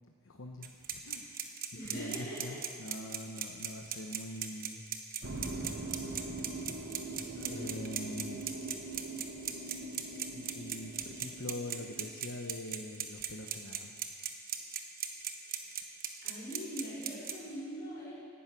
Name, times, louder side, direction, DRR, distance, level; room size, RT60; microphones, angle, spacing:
voice 1, 0.2-4.9 5.5-6.2 7.5-8.6 10.2-14.0, left 1 dB, 75° left, 2 dB, 1.0 m, -44 dB
sound 1, 0.6-17.3, right 10 dB, 45° right, 1.1 m, -37 dB
voice 2, 1.7-2.6 7.4-7.7 15.5-15.7 16.2-18.2, equal, 55° left, -7 dB, 5.3 m, -42 dB
sound 2, 5.2-12.2, right 2 dB, 65° right, 1.3 m, -42 dB
17.5 x 11.5 x 6.1 m, 2.1 s
head